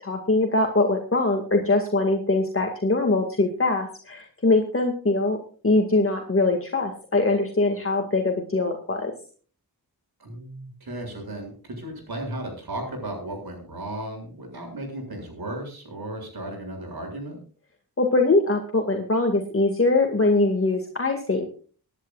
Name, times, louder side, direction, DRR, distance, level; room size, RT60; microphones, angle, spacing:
voice 1, 0.0-5.4 5.6-9.1 18.0-21.5, left 2 dB, 35° left, 3 dB, 2.2 m, -22 dB
voice 2, 10.2-17.4, right 1 dB, 80° right, 2 dB, 7.1 m, -35 dB
25.0 x 10.5 x 2.5 m, 0.40 s
wide cardioid pair, 105°, 37 cm